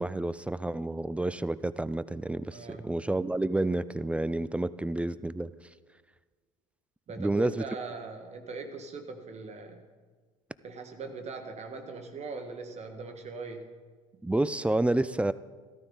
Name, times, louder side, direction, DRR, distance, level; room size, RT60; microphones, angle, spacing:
voice 1, 0.0-5.5 7.2-7.6 14.2-15.3, right 2 dB, 5° right, 16 dB, 0.4 m, -29 dB
voice 2, 2.5-2.9 7.1-9.8 10.6-13.7, right 4 dB, 40° right, 5 dB, 1.3 m, -40 dB
14.0 x 13.0 x 3.9 m, 1.5 s
hypercardioid pair, 75°, 18 cm